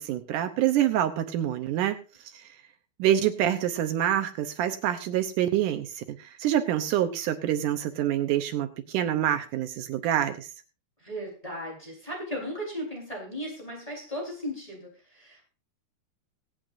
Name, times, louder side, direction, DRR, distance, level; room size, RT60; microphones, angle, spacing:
voice 1, 0.0-2.0 2.3-2.5 3.0-10.5, right 11 dB, 75° right, 1.9 m, -26 dB
voice 2, 11.0-15.5, equal, 10° left, 3.9 m, -36 dB
24.0 x 8.2 x 2.6 m
omnidirectional pair, 4.6 m